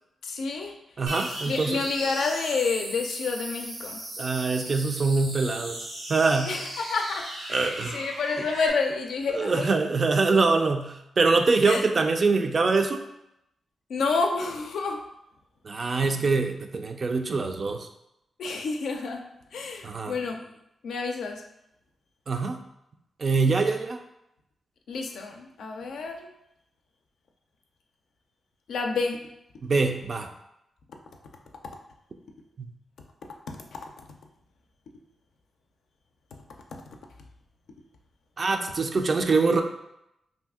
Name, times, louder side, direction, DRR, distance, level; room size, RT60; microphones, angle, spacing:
voice 1, 0.2-0.7 1.5-4.0 6.5-9.7 11.7-11.8 13.9-15.0 18.4-20.4 20.8-21.4 24.9-26.3 28.7-29.3 33.5-33.8, left 4 dB, 80° left, 3 dB, 0.4 m, -29 dB
voice 2, 1.0-1.8 4.2-5.8 6.1-6.6 7.5-8.0 9.3-13.0 15.6-17.9 19.8-20.2 22.3-22.6 23.2-24.0 29.6-30.3 38.4-39.6, right 3 dB, 50° right, 5 dB, 0.3 m, -24 dB
sound 1, 1.1-8.7, right 1 dB, 90° right, 0.9 m, -37 dB
2.7 x 2.4 x 3.5 m, 0.83 s
cardioid pair, 70°, 0 cm